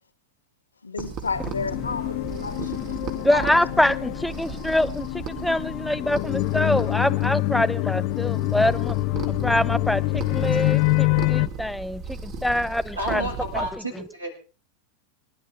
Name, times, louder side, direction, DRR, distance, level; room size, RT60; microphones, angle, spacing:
voice 1, 0.8-3.5, left 4 dB, 75° left, 1.9 m, -32 dB
sound 1, 1.0-13.7, right 5 dB, 35° right, 4.2 m, -37 dB
sound 2, 1.3-11.5, left 20 dB, 45° left, 0.8 m, -26 dB
voice 2, 3.2-9.0 9.3-13.3 13.5-14.0, left 1 dB, 5° left, 0.8 m, -25 dB
voice 3, 13.0-14.3, right 1 dB, 85° right, 7.5 m, -30 dB
26.0 x 12.0 x 3.8 m
figure-of-eight pair, 90°, 0 cm